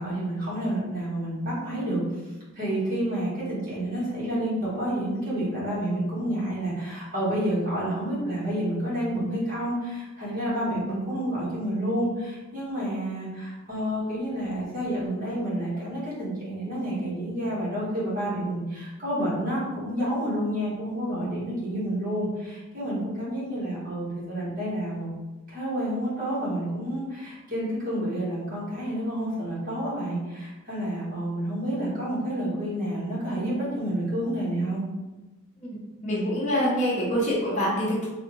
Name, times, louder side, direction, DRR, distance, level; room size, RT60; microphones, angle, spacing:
voice 1, 0.0-2.0 2.5-25.1 25.5-34.8, right 1 dB, 40° right, -8 dB, 1.4 m, -29 dB
voice 2, 35.6-38.1, equal, 35° left, -6 dB, 0.8 m, -26 dB
3.4 x 2.3 x 3.1 m, 1.1 s
head